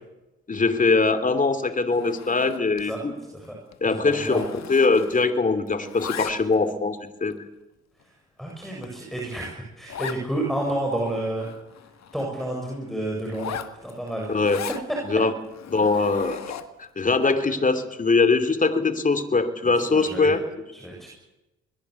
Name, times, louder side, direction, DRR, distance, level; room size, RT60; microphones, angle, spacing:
voice 1, 0.5-3.1 3.8-7.4 14.3-14.6 15.0-15.3 15.7-16.4 16.8-20.4, left 3 dB, 25° left, 10 dB, 2.7 m, -22 dB
Zipper (clothing), 1.9-2.9 3.2-3.5 3.7-5.4 5.7-6.7 7.3-7.4 8.0-8.1 8.5-8.6 8.8-8.9 9.2-9.3 9.9-10.2 10.7-10.8 11.0-12.3 13.2-14.9 15.4-16.8, left 9 dB, 60° left, 1.9 m, -38 dB
voice 2, 3.8-4.4 8.4-11.5 12.1-14.5 14.9-15.0 15.9-16.1 19.9-20.4 20.7-21.1, right 1 dB, ahead, -1 dB, 7.3 m, -30 dB
23.5 x 21.5 x 8.2 m, 0.97 s
cardioid pair, 90°, 30 cm